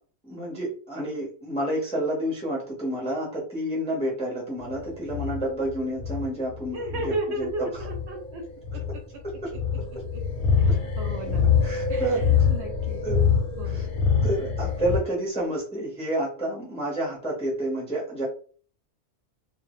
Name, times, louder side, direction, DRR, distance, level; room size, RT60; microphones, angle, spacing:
voice 1, 0.2-7.7 9.4-9.5 10.7-10.8 11.6-12.5 13.0-13.2 13.6-13.9 14.2-18.2, right 1 dB, 5° left, -4 dB, 0.6 m, -29 dB
sound 1, 4.6-15.0, left 6 dB, 50° left, 0.7 m, -25 dB
voice 2, 6.7-8.4 8.7-8.8 10.1-10.2 10.6-11.5 11.9-13.0 13.6-13.8, right 2 dB, 70° right, 2 dB, 0.8 m, -34 dB
2.1 x 2.0 x 2.9 m, 0.42 s
omnidirectional pair, 1.3 m